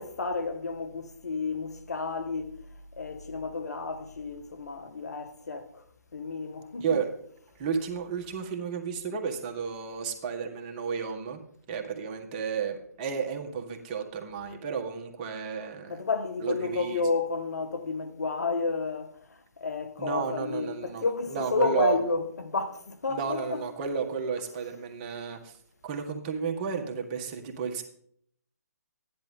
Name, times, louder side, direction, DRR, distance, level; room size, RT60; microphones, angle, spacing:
voice 1, 0.0-2.5 3.0-5.8 6.1-7.0 15.9-19.1 19.6-23.7, left 4 dB, 70° left, 1.4 m, -31 dB
voice 2, 6.8-7.1 7.6-11.4 11.7-16.0 16.4-17.0 20.0-21.1 21.3-22.0 23.1-25.6 25.8-27.8, right 6 dB, 30° right, 1.7 m, -32 dB
14.0 x 10.5 x 3.7 m
figure-of-eight pair, 140°, 9 cm